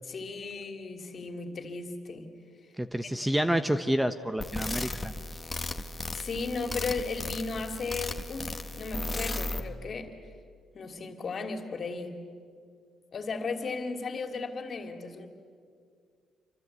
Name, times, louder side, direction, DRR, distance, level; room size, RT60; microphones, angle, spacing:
voice 1, 0.0-2.3 3.0-3.1 6.1-10.1 10.7-12.2 13.1-15.3, left 4 dB, 45° left, 5 dB, 3.0 m, -35 dB
voice 2, 2.8-5.1, right 1 dB, 5° right, 10 dB, 1.0 m, -28 dB
sound 1, 4.4-9.6, left 2 dB, 20° left, 1.6 m, -35 dB
28.0 x 25.0 x 8.3 m, 2.2 s
cardioid pair, 90°, 0 cm